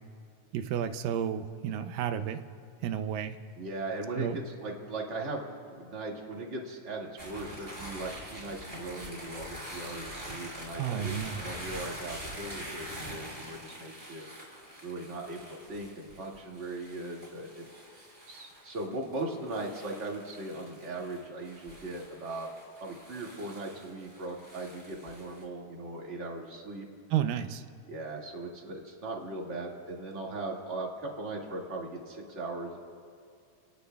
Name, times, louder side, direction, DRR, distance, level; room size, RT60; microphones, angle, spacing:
voice 1, 0.5-2.4 2.8-3.4 4.2-4.4 10.8-11.4 27.1-27.6, right 9 dB, 85° right, 9 dB, 2.3 m, -31 dB
voice 2, 3.6-14.2 14.8-22.5 22.8-26.9 27.9-32.8, right 2 dB, 25° right, -2 dB, 1.7 m, -39 dB
sound 1, 7.2-25.4, equal, 5° right, 4.7 m, -45 dB
29.5 x 18.0 x 2.3 m, 2.3 s
omnidirectional pair, 3.9 m